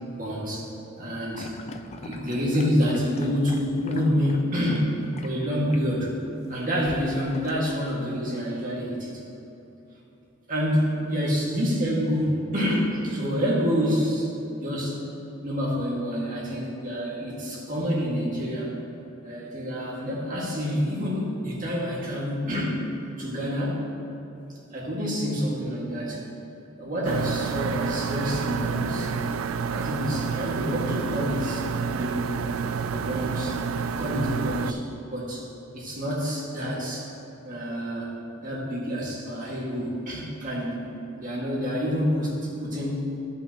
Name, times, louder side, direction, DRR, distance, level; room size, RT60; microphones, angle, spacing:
voice 1, 0.1-0.7 1.0-1.5 2.0-4.9 5.2-6.1 6.5-9.2 10.5-14.3 14.6-15.0 15.4-18.8 19.2-22.8 23.2-23.9 24.7-26.2 26.8-29.2 29.7-32.3 32.9-33.6 33.9-35.5 35.7-37.1 37.4-40.8 41.2-43.1, equal, 45° right, -4 dB, 2.0 m, -27 dB
sound 1, 1.3-4.9 5.1-5.3 5.7-5.9 6.8-7.9, left 3 dB, 35° left, 0.5 m, -41 dB
sound 2, 27.0-34.7, right 5 dB, 85° right, 0.3 m, -29 dB
15.5 x 5.5 x 3.0 m, 2.9 s
head